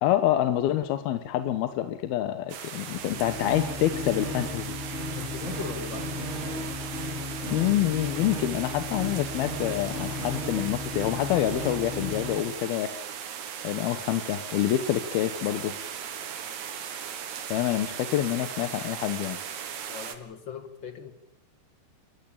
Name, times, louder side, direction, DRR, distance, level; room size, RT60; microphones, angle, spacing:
voice 1, 0.0-4.8 7.5-13.0 13.6-15.8 17.5-19.4, left 12 dB, 80° left, 10 dB, 3.0 m, -27 dB
sound 1, 2.5-20.2, right 8 dB, 55° right, 2.8 m, -38 dB
sound 2, 2.9-12.5, left 1 dB, 15° left, 4.7 m, -35 dB
voice 2, 5.1-6.2 19.9-21.1, left 7 dB, 45° left, 9 dB, 1.6 m, -39 dB
27.5 x 15.5 x 8.8 m, 0.83 s
omnidirectional pair, 4.4 m